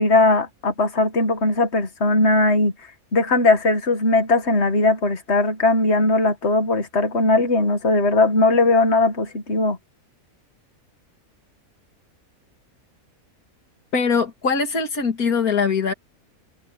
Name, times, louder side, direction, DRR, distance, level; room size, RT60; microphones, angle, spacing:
voice 1, 0.0-2.7 3.1-9.8, left 2 dB, 50° left, 2.1 m, -19 dB
voice 2, 13.9-15.9, left 5 dB, 90° left, 2.7 m, -21 dB
omnidirectional pair, 1.5 m